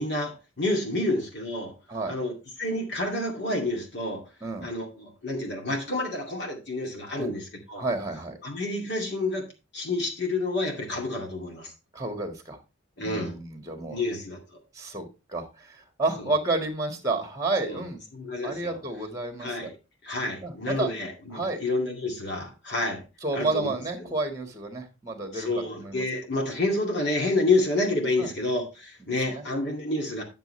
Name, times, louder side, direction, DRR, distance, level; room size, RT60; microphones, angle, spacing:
voice 1, 0.0-1.7 2.1-4.2 4.6-7.8 8.4-9.5 9.7-11.7 13.0-13.3 13.9-14.4 16.2-16.3 17.6-17.8 18.1-18.8 19.4-19.7 20.0-23.0 23.3-23.7 25.3-30.2, left 2 dB, 55° left, 0 dB, 2.3 m, -29 dB
voice 2, 7.8-8.4 11.9-12.6 13.0-14.0 14.7-18.0 18.4-19.7 20.4-20.9 21.3-21.6 23.2-26.0 28.2-28.3 29.0-29.4, right 2 dB, 15° right, 6 dB, 1.6 m, -31 dB
10.5 x 6.7 x 3.2 m, 0.29 s
head